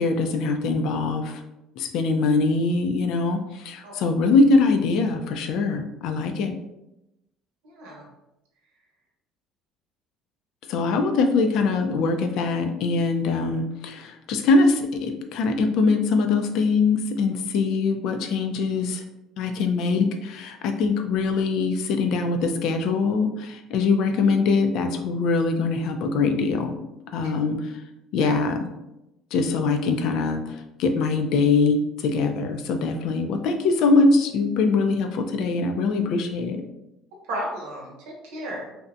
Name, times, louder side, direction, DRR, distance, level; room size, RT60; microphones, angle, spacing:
voice 1, 0.0-1.4 1.8-6.6 10.7-19.0 19.4-26.8 27.1-27.7 28.1-28.7 29.3-36.6, left 3 dB, 70° left, 6 dB, 0.3 m, -23 dB
voice 2, 7.6-8.0 28.2-28.3 37.3-38.7, right 1 dB, 90° right, -2 dB, 0.9 m, -33 dB
2.7 x 2.1 x 2.4 m, 0.91 s
cardioid pair, 105°, 0 cm